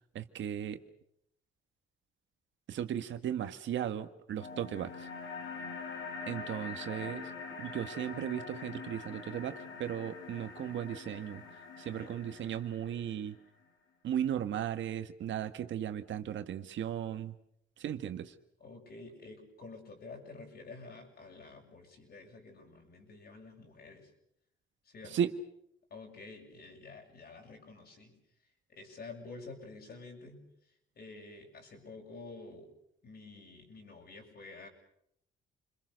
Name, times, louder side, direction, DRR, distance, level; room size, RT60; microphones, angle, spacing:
voice 1, 0.1-0.8 2.7-5.1 6.3-7.3 7.6-11.4 11.8-13.4 14.0-17.3 17.8-18.3 25.1-25.3, right 10 dB, 70° right, 9 dB, 1.7 m, -36 dB
sound 1, 4.4-13.4, left 4 dB, 75° left, 4.0 m, -44 dB
voice 2, 18.6-24.1 24.8-25.2 25.9-28.1 28.7-30.4 31.0-32.7 33.0-34.7, left 3 dB, 55° left, 2 dB, 7.3 m, -49 dB
28.5 x 22.5 x 6.6 m, 0.75 s
cardioid pair, 90°, 20 cm